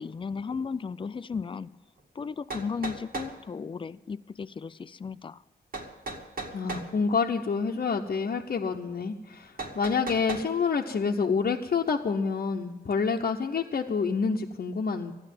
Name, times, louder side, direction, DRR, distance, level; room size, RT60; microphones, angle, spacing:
voice 1, 0.0-1.8 2.1-5.4, left 5 dB, 30° left, 0.4 m, -35 dB
sound 1, 2.0-2.1 2.5-3.4 5.7-6.9 9.6-10.5, right 3 dB, 60° right, 2.1 m, -36 dB
voice 2, 6.5-15.1, left 5 dB, 60° left, 0.8 m, -28 dB
13.5 x 9.9 x 9.2 m
cardioid pair, 85°, 17 cm